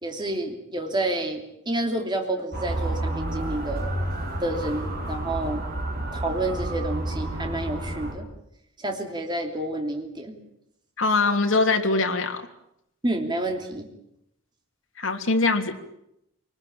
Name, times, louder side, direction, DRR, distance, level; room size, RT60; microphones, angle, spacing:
voice 1, 0.0-3.9 4.4-5.6 6.1-8.2 8.8-10.3 13.0-13.9, right 1 dB, 20° right, 2 dB, 3.0 m, -29 dB
Motor vehicle (road) / Siren, 2.5-8.1, right 1 dB, 45° right, 4.8 m, -30 dB
voice 2, 11.0-12.4 15.0-15.7, left 3 dB, 65° left, 4 dB, 3.1 m, -22 dB
27.0 x 20.0 x 8.8 m, 0.78 s
head